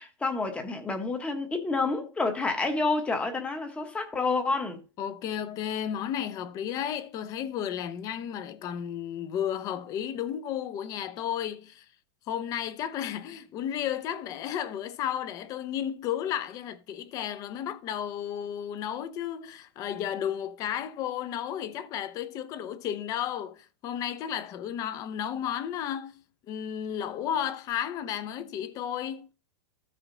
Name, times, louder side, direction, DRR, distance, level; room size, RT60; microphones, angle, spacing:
voice 1, 0.0-4.8, left 3 dB, 10° left, 1.0 m, -29 dB
voice 2, 5.0-11.8 12.3-26.2 26.5-29.3, left 9 dB, 25° left, 0.6 m, -33 dB
14.0 x 5.0 x 3.8 m
supercardioid pair, 170°, 15 cm